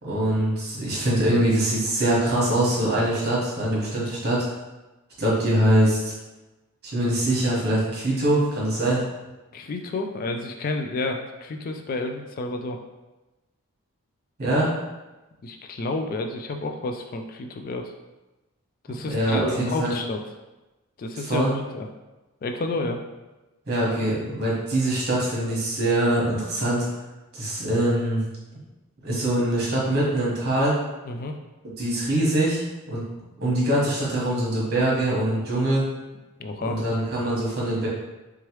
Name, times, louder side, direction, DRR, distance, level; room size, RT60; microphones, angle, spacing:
voice 1, 0.0-4.5 5.2-6.1 6.8-9.0 14.4-14.7 19.0-19.9 21.2-21.6 23.7-26.8 27.3-28.2 29.0-30.7 31.8-32.6 32.9-35.8 36.6-37.9, right 1 dB, 45° right, -6 dB, 1.3 m, -23 dB
voice 2, 9.5-12.8 15.4-17.9 18.9-20.2 21.0-21.5 21.7-21.9 22.4-23.0 31.1-31.4 36.4-36.8, left 2 dB, 40° left, 4 dB, 0.3 m, -30 dB
3.5 x 3.1 x 3.1 m, 1.1 s
head